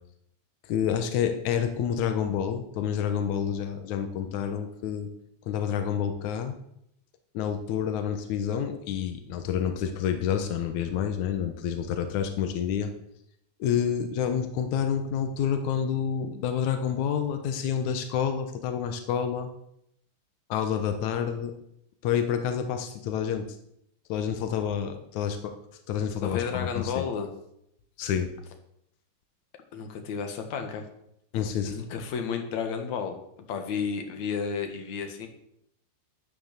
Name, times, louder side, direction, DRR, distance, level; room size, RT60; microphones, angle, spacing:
voice 1, 0.7-5.1 5.5-6.6 7.3-12.9 13.6-19.5 20.5-21.5 22.0-23.5 24.1-25.5 25.9-27.0 28.0-28.3 31.3-31.7, left 8 dB, 85° left, 7 dB, 1.6 m, -28 dB
voice 2, 26.2-27.3 29.7-30.8 31.7-33.2 33.5-35.3, left 6 dB, 55° left, 5 dB, 2.4 m, -32 dB
12.5 x 9.7 x 6.8 m, 0.76 s
omnidirectional pair, 5.1 m